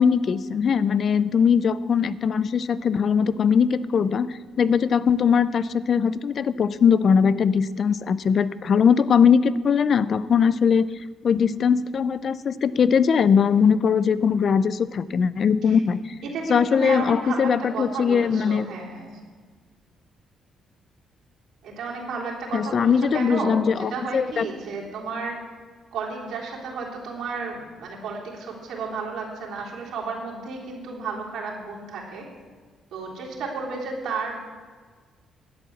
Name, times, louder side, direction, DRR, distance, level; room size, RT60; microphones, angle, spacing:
voice 1, 0.0-10.9 11.2-16.0 16.5-18.7 22.5-24.5, left 6 dB, 55° left, 17 dB, 0.5 m, -20 dB
voice 2, 16.2-19.2 21.6-25.5 25.9-32.3 32.9-34.4, right 4 dB, 80° right, -3 dB, 3.5 m, -32 dB
11.5 x 8.3 x 7.2 m, 1.5 s
cardioid pair, 90°, 0 cm